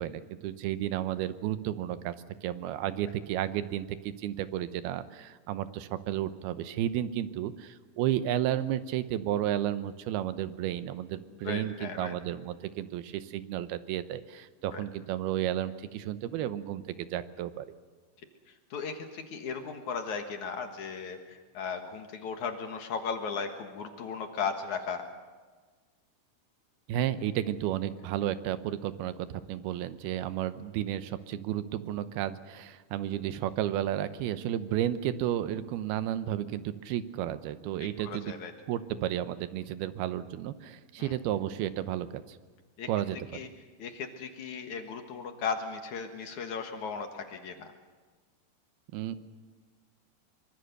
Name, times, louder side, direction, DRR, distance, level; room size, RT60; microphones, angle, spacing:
voice 1, 0.0-2.2 2.4-17.7 26.9-38.3 38.7-42.4 42.9-43.2 48.9-49.2, right 12 dB, 80° right, 12 dB, 2.8 m, -32 dB
voice 2, 11.4-12.1 14.7-14.8 18.7-25.1 37.8-38.5 41.0-41.1 42.8-42.9 43.3-43.5 43.8-47.7, left 5 dB, 60° left, 5 dB, 2.6 m, -36 dB
24.5 x 23.5 x 6.6 m, 1.4 s
omnidirectional pair, 4.5 m